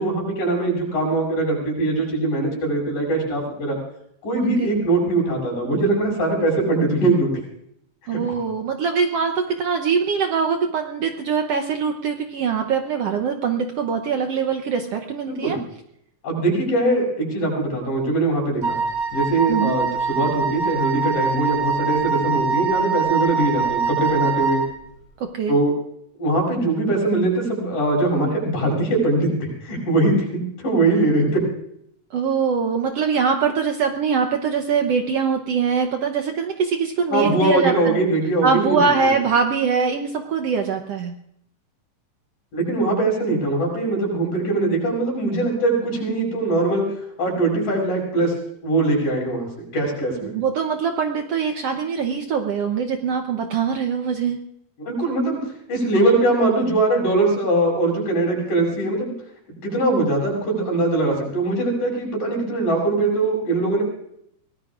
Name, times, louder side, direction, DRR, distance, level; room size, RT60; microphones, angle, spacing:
voice 1, 0.0-3.8 4.2-7.3 8.1-8.4 15.3-15.6 16.2-18.8 19.1-24.6 25.5-25.7 26.2-31.4 37.1-39.2 42.5-46.9 47.2-48.3 48.6-49.5 49.7-50.3 54.8-55.4 55.7-59.1 59.6-63.8, right 2 dB, 75° left, -2 dB, 8.4 m, -21 dB
voice 2, 8.1-15.6 19.5-19.8 25.2-25.6 32.1-38.0 38.4-41.2 50.2-54.4, right 6 dB, 70° right, 4 dB, 1.5 m, -23 dB
Wind instrument woodwind instrument, 18.6-24.7, right 5 dB, 30° right, 2.2 m, -24 dB
24.5 x 18.5 x 2.5 m, 0.72 s
omnidirectional pair, 3.9 m